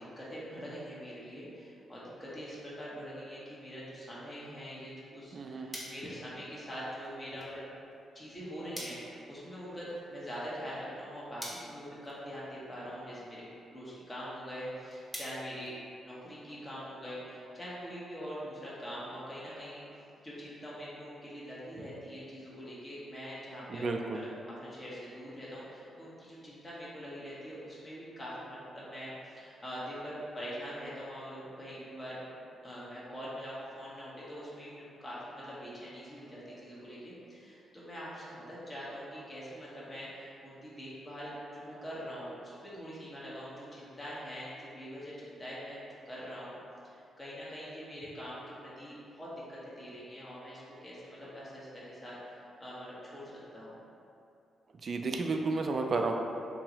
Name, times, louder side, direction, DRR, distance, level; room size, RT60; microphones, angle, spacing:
voice 1, 0.2-7.6 8.1-13.4 13.7-15.8 16.0-19.8 20.2-23.8 24.1-24.3 24.6-32.4 32.6-46.6 46.8-53.8, equal, 25° left, -8 dB, 1.3 m, -43 dB
voice 2, 5.3-5.8 23.7-24.0 54.8-56.2, right 3 dB, 50° right, 3 dB, 0.3 m, -31 dB
sound 1, 5.7-16.4, equal, ahead, 1.1 m, -50 dB
3.1 x 2.8 x 3.8 m, 2.7 s
hypercardioid pair, 40°, 0 cm